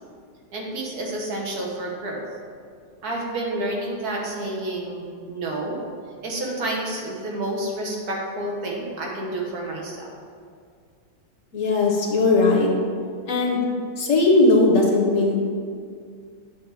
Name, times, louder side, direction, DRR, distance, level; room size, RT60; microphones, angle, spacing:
voice 1, 0.5-2.3 3.0-5.8 6.2-10.1, right 1 dB, 75° right, -1 dB, 1.6 m, -29 dB
voice 2, 11.5-12.7 13.3-13.7 14.0-15.4, left 2 dB, 60° left, 0 dB, 1.2 m, -18 dB
7.7 x 3.4 x 6.1 m, 2.1 s
omnidirectional pair, 1.6 m